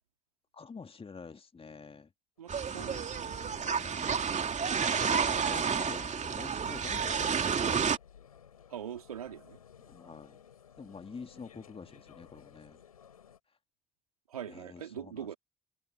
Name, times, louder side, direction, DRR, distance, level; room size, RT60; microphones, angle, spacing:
voice 1, 0.5-2.1 3.7-4.4 5.3-7.7 9.8-10.4 10.8-12.8 14.5-15.3, left 5 dB, 30° left, 2.7 m, -48 dB
sound 1, 2.4-13.4, left 8 dB, 85° left, 7.6 m, -56 dB
voice 2, 2.4-3.6 8.7-9.6 14.3-15.4, right 9 dB, 85° right, 3.7 m, -43 dB
sound 2, 2.5-8.0, right 6 dB, 40° right, 2.9 m, -30 dB
figure-of-eight pair, 45°, 18 cm